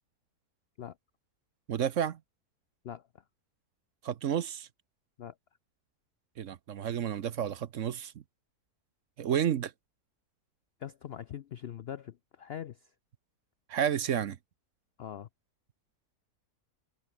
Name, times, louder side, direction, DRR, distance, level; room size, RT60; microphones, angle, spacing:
voice 1, 1.7-2.2 4.0-4.7 6.4-8.1 9.2-9.7 13.7-14.4, right 9 dB, 60° right, 1.1 m, -31 dB
voice 2, 2.8-3.2 5.2-5.3 10.8-12.9 15.0-15.3, left 9 dB, 65° left, 0.6 m, -42 dB
omnidirectional pair, 1.6 m